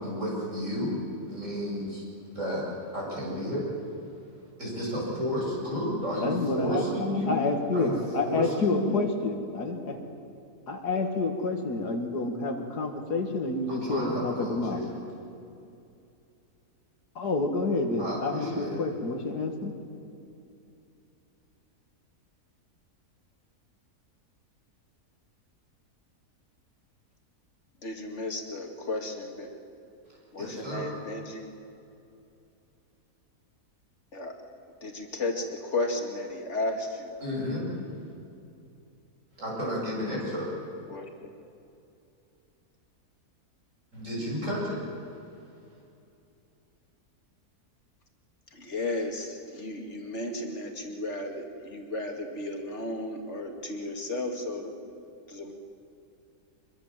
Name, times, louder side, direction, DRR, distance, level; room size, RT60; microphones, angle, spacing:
voice 1, 0.0-0.9 1.3-2.7 2.9-3.7 4.6-7.3 7.7-7.9 8.2-8.9 13.7-14.8 18.0-18.8 30.4-30.9 37.2-37.6 39.4-40.5 43.9-44.8, equal, 50° right, -4 dB, 8.0 m, -32 dB
voice 2, 6.2-6.9 7.3-10.0 10.7-14.8 17.2-19.7, left 3 dB, 85° left, 3 dB, 2.6 m, -28 dB
voice 3, 27.8-29.5 30.3-31.5 34.1-34.3 34.8-37.1 40.9-41.1 48.6-54.7 55.3-55.5, left 2 dB, 45° left, 3 dB, 2.7 m, -34 dB
25.0 x 22.0 x 7.6 m, 2.7 s
omnidirectional pair, 1.7 m